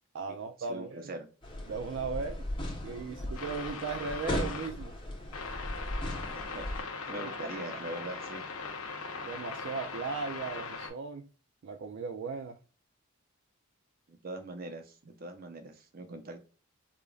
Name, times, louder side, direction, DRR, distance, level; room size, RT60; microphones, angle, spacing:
voice 1, 0.1-1.1 1.7-2.4 2.8-4.9 7.1-7.3 7.7-7.8 9.2-11.3 11.6-12.6, right 5 dB, 60° right, 0.4 m, -37 dB
voice 2, 0.7-1.3 6.3-6.6 7.1-8.5 14.1-16.4, right 2 dB, 45° right, 0.7 m, -42 dB
sound 1, 1.4-6.8, left 1 dB, 20° left, 1.0 m, -37 dB
sound 2, 3.4-4.7 5.3-10.9, left 4 dB, 85° left, 0.9 m, -40 dB
4.9 x 2.4 x 2.3 m
head